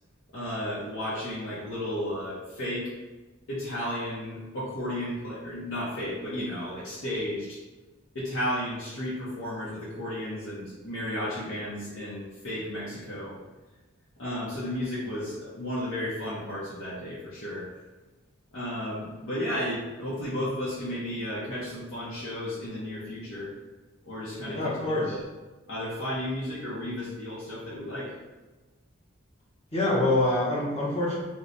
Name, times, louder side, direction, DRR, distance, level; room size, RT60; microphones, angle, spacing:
voice 1, 0.3-2.9 3.5-7.6 8.1-13.3 14.2-17.7 18.5-23.5 24.1-24.8 25.1-25.2 25.7-28.1, left 1 dB, 80° left, -8 dB, 0.8 m, -33 dB
voice 2, 24.4-25.2 29.7-31.2, left 2 dB, 30° left, -5 dB, 0.9 m, -25 dB
3.0 x 2.1 x 3.9 m, 1.2 s
head